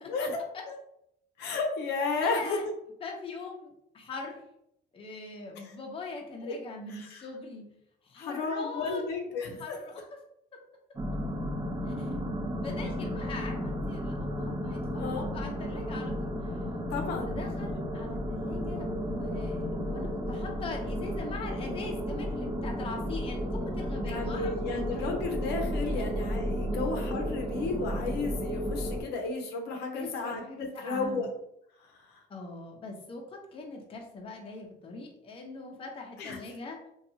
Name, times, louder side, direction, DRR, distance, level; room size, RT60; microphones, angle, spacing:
voice 1, 1.4-2.6 5.6-5.7 6.4-6.6 6.9-7.2 8.2-9.8 15.0-15.3 16.9-17.3 24.1-31.3 32.1-32.2 36.2-36.4, left 4 dB, 80° left, 3 dB, 0.6 m, -33 dB
voice 2, 2.2-2.6 3.0-4.5 4.9-7.7 8.0-9.3 9.6-10.1 11.9-12.1 12.6-16.5 17.2-25.1 26.0-26.1 29.9-31.3 32.3-36.8, left 3 dB, 35° left, 1 dB, 0.6 m, -42 dB
sound 1, 11.0-29.0, equal, 25° right, 0.6 m, -33 dB
2.7 x 2.3 x 2.6 m, 0.76 s
cardioid pair, 110°, 17 cm